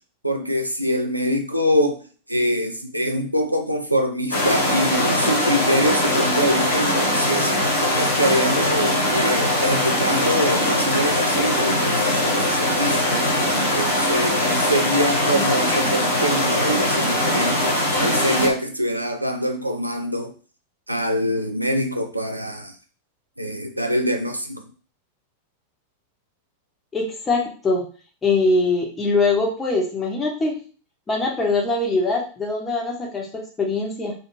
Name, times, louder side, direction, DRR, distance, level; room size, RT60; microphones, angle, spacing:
voice 1, 0.2-2.0 2.3-13.1 13.5-20.3 20.9-22.8 23.4-24.6, equal, 85° right, 4 dB, 0.4 m, -24 dB
sound 1, 4.3-18.5, left 1 dB, 70° left, 1.1 m, -21 dB
voice 2, 26.9-27.9 28.2-30.6 31.1-34.1, left 3 dB, 15° left, -1 dB, 0.8 m, -22 dB
2.5 x 2.4 x 3.1 m, 0.39 s
figure-of-eight pair, 90°, 0 cm